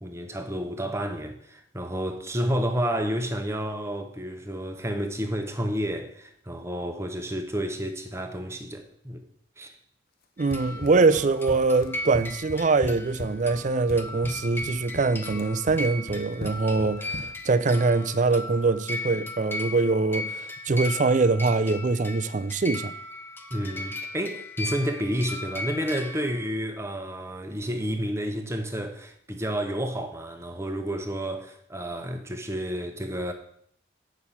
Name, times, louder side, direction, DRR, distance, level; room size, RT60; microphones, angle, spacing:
voice 1, 0.0-9.2 9.6-9.7 23.5-33.3, equal, 15° right, 0.9 m, -30 dB
sound 1, 10.4-26.5, left 1 dB, 10° left, 0.7 m, -37 dB
voice 2, 10.4-22.9, right 3 dB, 45° right, 0.5 m, -23 dB
Run, 10.5-17.5, left 1 dB, 55° left, 0.8 m, -39 dB
8.6 x 6.2 x 5.6 m
head